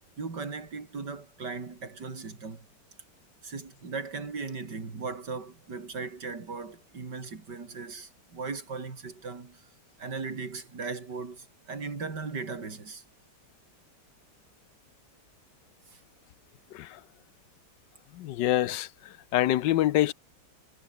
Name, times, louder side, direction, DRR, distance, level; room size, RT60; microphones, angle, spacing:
voice 1, 0.2-2.7 3.4-9.7 10.0-13.0 15.9-16.0, right 4 dB, 65° right, 3.9 m, -38 dB
voice 2, 18.1-18.9 19.3-20.1, left 14 dB, 75° left, 1.3 m, -25 dB
omnidirectional pair, 2.0 m